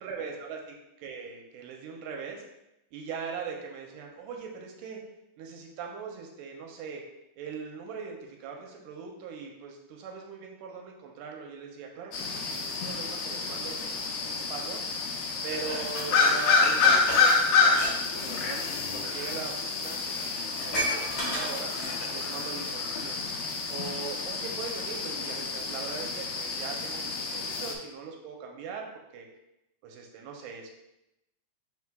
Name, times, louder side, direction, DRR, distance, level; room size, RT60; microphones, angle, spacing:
voice 1, 0.0-2.4 2.9-5.0 5.4-7.0 7.4-14.8 15.4-21.7 22.1-23.2 23.7-28.9 29.1-29.3 29.8-30.7, right 5 dB, 85° right, 1 dB, 2.1 m, -41 dB
sound 1, 12.1-27.8, left 4 dB, 90° left, 1.5 m, -28 dB
Dishes pots and pans, 15.5-17.9 18.2-18.5 19.3-19.4 19.7-19.8 20.0-22.2 22.7-22.8, equal, 55° left, 1.2 m, -34 dB
4.5 x 3.8 x 2.2 m, 0.89 s
omnidirectional pair, 3.6 m